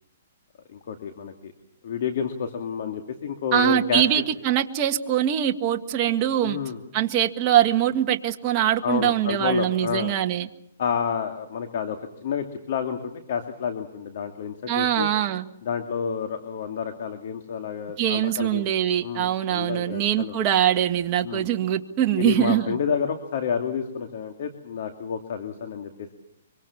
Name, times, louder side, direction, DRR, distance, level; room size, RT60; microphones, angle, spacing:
voice 1, 0.7-1.5 1.8-4.2 6.4-6.8 8.8-10.1 10.8-15.1 15.6-18.6 19.0-20.4 21.2-21.5 22.2-26.1, left 7 dB, 55° left, 6 dB, 2.6 m, -29 dB
voice 2, 3.5-6.6 6.9-10.5 14.7-15.4 18.0-22.7, right 11 dB, 30° right, 4 dB, 1.7 m, -23 dB
25.0 x 24.0 x 7.3 m, 0.76 s
hypercardioid pair, 155°, 0 cm